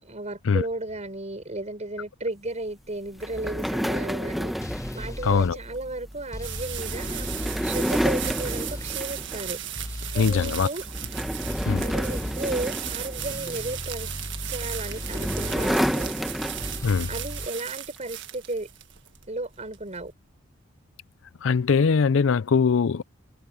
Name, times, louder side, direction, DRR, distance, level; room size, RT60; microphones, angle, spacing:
voice 1, 0.0-4.5 4.9-7.3 7.6-9.6 10.1-10.9 11.8-14.1 14.5-16.1 17.1-18.7 19.3-20.1, right 2 dB, 35° right, 4.8 m, -34 dB
sound 1, 3.2-9.7 10.1-10.4 10.8-13.8 14.6-17.1, equal, ahead, 1.4 m, -30 dB
sound 2, 4.6-5.5 6.3-9.0 9.8-10.7 11.5-12.4 13.2-15.8 16.6-17.5, left 1 dB, 15° left, 0.9 m, -36 dB
voice 2, 5.2-5.6 10.2-10.7 11.7-11.8 16.8-17.1 21.4-23.0, left 5 dB, 75° left, 0.5 m, -21 dB
sound 3, 5.6-20.1, right 12 dB, 65° right, 1.7 m, -37 dB
head